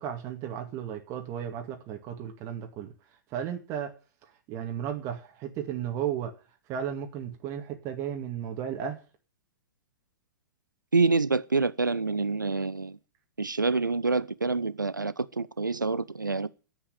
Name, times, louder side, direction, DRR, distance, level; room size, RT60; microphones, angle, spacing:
voice 1, 0.0-2.9 3.3-3.9 4.5-6.3 6.7-9.0, right 9 dB, 30° right, 2.1 m, -34 dB
voice 2, 10.9-13.0 13.4-16.5, right 3 dB, 80° right, 0.8 m, -27 dB
10.5 x 8.2 x 9.1 m
figure-of-eight pair, 110°, 10 cm